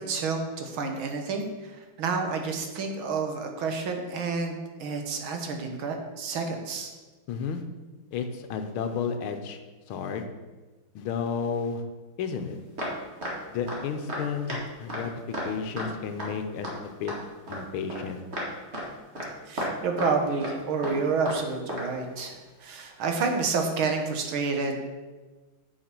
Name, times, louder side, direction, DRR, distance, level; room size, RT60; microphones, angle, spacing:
voice 1, 0.1-1.7 2.0-6.9 19.5-24.9, right 4 dB, 70° right, 4 dB, 1.9 m, -29 dB
voice 2, 7.3-7.6 8.1-9.6 9.9-10.3 10.9-11.8 12.2-12.6 13.5-15.1 15.4-17.1 17.5-18.2, left 6 dB, 75° left, 7 dB, 1.6 m, -32 dB
sound 1, 12.8-13.3 13.7-13.8 14.1-14.2 14.5-14.6 14.9-15.0 15.3-15.5 15.8-15.9 16.2-16.3 16.6-16.7 17.1-17.6 17.9-18.0 18.3-18.5 18.7-18.9 19.1-19.3 19.6-20.1 20.4-20.5 20.8-21.4 21.7-21.9 23.1-23.2, equal, 30° right, 2.2 m, -33 dB
7.6 x 6.5 x 6.0 m, 1.2 s
omnidirectional pair, 2.4 m